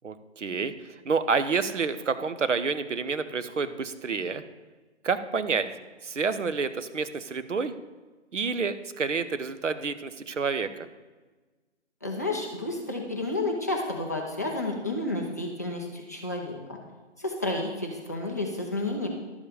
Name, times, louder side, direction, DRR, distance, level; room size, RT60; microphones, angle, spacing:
voice 1, 0.0-0.7 1.0-4.4 5.0-5.7 6.0-7.7 8.3-10.9, right 5 dB, 85° right, 11 dB, 0.9 m, -28 dB
voice 2, 12.0-16.8 17.2-19.1, left 2 dB, 15° left, -1 dB, 0.5 m, -31 dB
12.0 x 7.3 x 5.0 m, 1.3 s
figure-of-eight pair, 160°, 36 cm